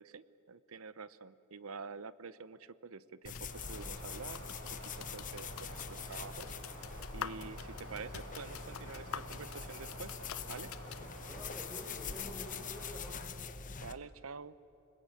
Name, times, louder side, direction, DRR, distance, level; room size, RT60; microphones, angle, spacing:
voice 1, 0.0-4.4 5.1-6.6 7.1-10.2 10.5-10.7 13.8-14.5, right 4 dB, 80° right, 16 dB, 0.8 m, -47 dB
sound 1, 3.2-13.9, left 5 dB, 40° left, 1.0 m, -44 dB
sound 2, 3.3-11.1, left 8 dB, 75° left, 0.6 m, -48 dB
sound 3, 3.4-13.1, right 1 dB, 60° right, 7.4 m, -51 dB
voice 2, 11.2-13.3, left 1 dB, ahead, 1 dB, 4.9 m, -49 dB
29.0 x 20.0 x 8.8 m, 3.0 s
head